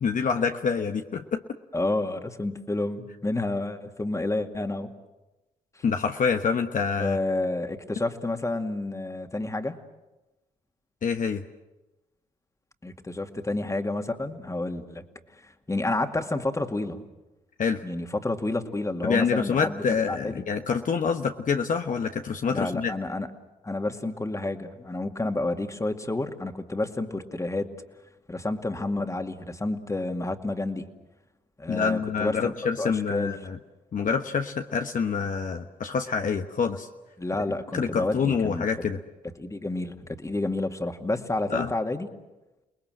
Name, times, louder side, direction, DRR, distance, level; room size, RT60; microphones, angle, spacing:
voice 1, 0.0-1.4 5.8-7.2 11.0-11.4 17.6-17.8 19.0-22.9 31.7-33.6 33.9-36.9 37.7-39.0 41.5-41.7, left 6 dB, 55° left, 5 dB, 1.2 m, -26 dB
voice 2, 1.7-4.9 5.8-5.9 7.0-9.8 12.8-15.0 15.4-17.0 17.8-20.4 22.5-23.3 23.6-27.7 28.3-30.9 31.6-33.3 37.2-38.7 39.4-42.1, left 2 dB, 20° left, 5 dB, 2.3 m, -30 dB
29.0 x 20.0 x 7.9 m, 1.0 s
supercardioid pair, 55°, 17 cm